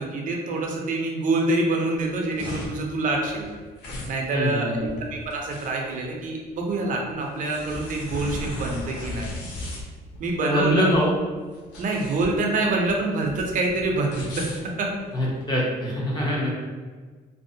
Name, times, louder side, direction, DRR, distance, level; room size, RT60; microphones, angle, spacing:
voice 1, 0.0-3.5 4.1-9.3 10.2-10.9 11.8-14.5 14.8-14.9, right 2 dB, 50° right, 1 dB, 0.5 m, -26 dB
sound 1, 2.0-15.5, left 1 dB, 85° left, 0.6 m, -37 dB
voice 2, 4.3-4.9 10.4-11.1 15.1-16.5, equal, 25° left, -4 dB, 0.8 m, -24 dB
2.6 x 2.0 x 2.6 m, 1.4 s
cardioid pair, 110°, 17 cm